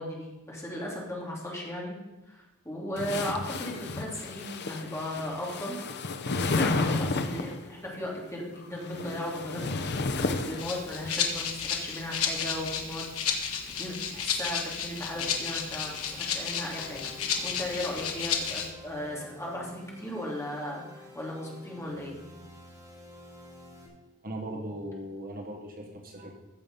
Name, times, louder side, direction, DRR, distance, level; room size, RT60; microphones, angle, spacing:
voice 1, 0.0-2.0 2.3-5.8 6.3-17.0 17.4-22.2, left 1 dB, 15° left, -3 dB, 2.9 m, -36 dB
sound 1, 3.0-7.6 8.6-11.1, left 3 dB, 50° left, 0.8 m, -32 dB
Rattle (instrument), 10.6-18.7, left 7 dB, 75° left, 1.5 m, -32 dB
sound 2, 15.1-23.9, left 1 dB, 15° right, 2.9 m, -50 dB
voice 2, 24.2-26.3, right 1 dB, 40° right, 3 dB, 1.4 m, -38 dB
15.0 x 7.0 x 5.5 m, 1.0 s
head